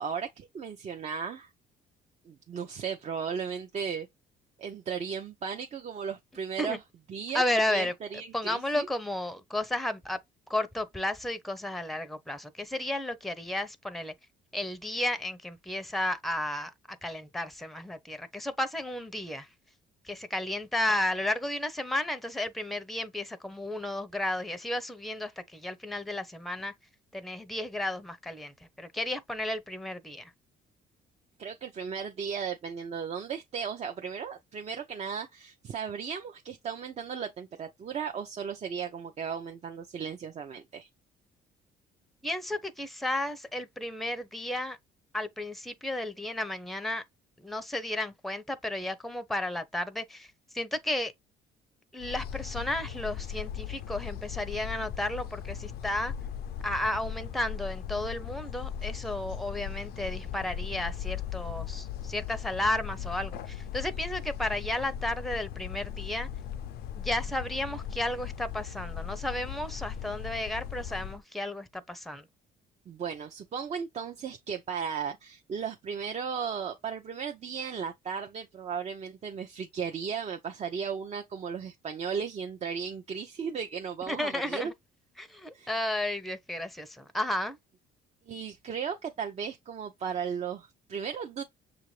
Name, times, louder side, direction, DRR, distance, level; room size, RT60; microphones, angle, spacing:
voice 1, 0.0-1.5 2.3-4.1 4.6-6.8 7.1-7.4 7.7-8.9 31.4-40.9 72.9-84.7 85.5-85.7 88.3-91.4, right 6 dB, 40° right, 0.6 m, -36 dB
voice 2, 7.3-7.9 8.3-10.2 10.5-14.1 14.5-19.5 20.0-26.7 27.1-30.3 42.2-44.8 45.1-47.0 47.4-50.3 50.5-51.1 51.9-56.1 56.6-66.3 66.9-72.3 84.1-84.7 85.2-87.6, left 1 dB, ahead, 0.6 m, -33 dB
sound 1, 52.0-71.2, left 9 dB, 70° left, 0.5 m, -38 dB
6.6 x 2.5 x 3.1 m
cardioid pair, 110°, 17 cm